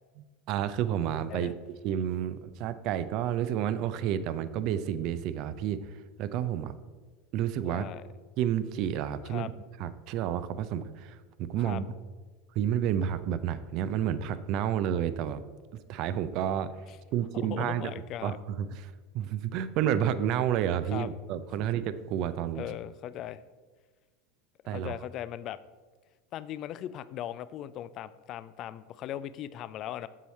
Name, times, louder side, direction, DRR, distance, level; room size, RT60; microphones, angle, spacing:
voice 1, 0.2-1.5 1.8-6.7 7.3-7.9 8.4-9.5 9.8-11.8 12.6-15.4 15.7-16.7 17.1-17.9 18.2-22.6 24.7-24.9, right 10 dB, 50° right, 13 dB, 0.5 m, -30 dB
voice 2, 7.6-8.0 9.2-9.5 11.6-11.8 17.3-18.4 20.9-21.1 21.6-21.7 22.5-23.4 24.6-25.6 26.3-30.1, left 11 dB, 45° left, 16 dB, 0.4 m, -38 dB
7.4 x 7.0 x 4.2 m, 1.4 s
figure-of-eight pair, 80°, 0 cm